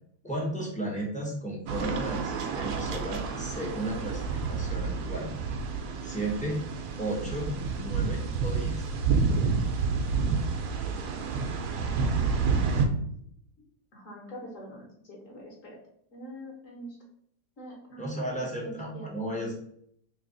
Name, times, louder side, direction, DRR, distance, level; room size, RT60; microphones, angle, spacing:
voice 1, 0.2-5.3 6.0-6.7 7.0-8.9 18.0-19.6, right 1 dB, 10° left, -3 dB, 0.5 m, -34 dB
sound 1, 1.7-12.9, right 5 dB, 75° right, 1.2 m, -29 dB
voice 2, 13.9-15.8 16.1-17.0 17.6-19.4, equal, 55° left, -2 dB, 1.4 m, -45 dB
3.3 x 2.9 x 3.7 m, 0.68 s
omnidirectional pair, 1.8 m